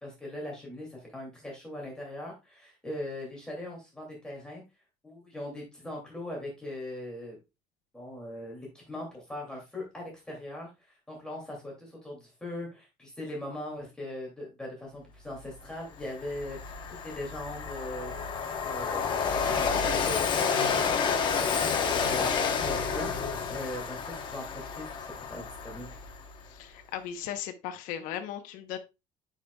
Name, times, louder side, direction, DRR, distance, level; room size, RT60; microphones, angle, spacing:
voice 1, 0.0-4.6 5.0-7.4 7.9-18.1 18.6-26.0, left 1 dB, 5° left, -2 dB, 2.5 m, -40 dB
Train, 15.5-15.6 16.0-26.4, left 6 dB, 35° left, 1.0 m, -30 dB
voice 2, 26.5-28.8, left 10 dB, 70° left, 7 dB, 0.9 m, -37 dB
9.3 x 5.2 x 2.3 m, 0.25 s
cardioid pair, 160°, 14 cm